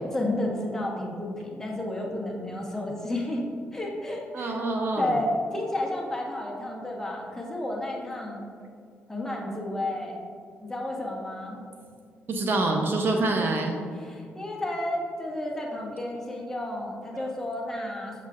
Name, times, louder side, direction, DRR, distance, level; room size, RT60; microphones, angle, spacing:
voice 1, 0.1-3.4 3.7-4.6 5.0-8.4 9.1-10.2 10.6-11.6 13.9-18.1, left 1 dB, 10° left, -3 dB, 1.3 m, -31 dB
voice 2, 4.3-5.1 12.3-13.8 17.1-17.3, right 2 dB, 50° right, 2 dB, 0.7 m, -26 dB
7.2 x 5.8 x 2.5 m, 2.3 s
cardioid pair, 80°, 5 cm